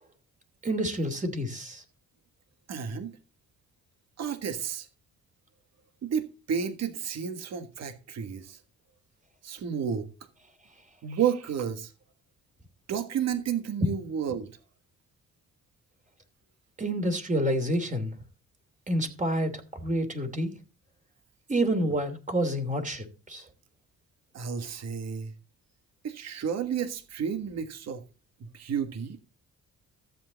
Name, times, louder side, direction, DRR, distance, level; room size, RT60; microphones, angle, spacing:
voice 1, 0.6-1.8 16.8-18.1 18.9-20.5 21.5-23.4, right 1 dB, 25° right, 2.8 m, -28 dB
voice 2, 2.7-3.2 4.2-4.9 6.0-8.6 9.4-10.1 11.0-11.9 12.9-14.5 24.3-25.3 26.0-28.0 28.4-29.2, right 7 dB, 60° right, 1.5 m, -31 dB
13.5 x 8.0 x 4.0 m
cardioid pair, 90°, 30 cm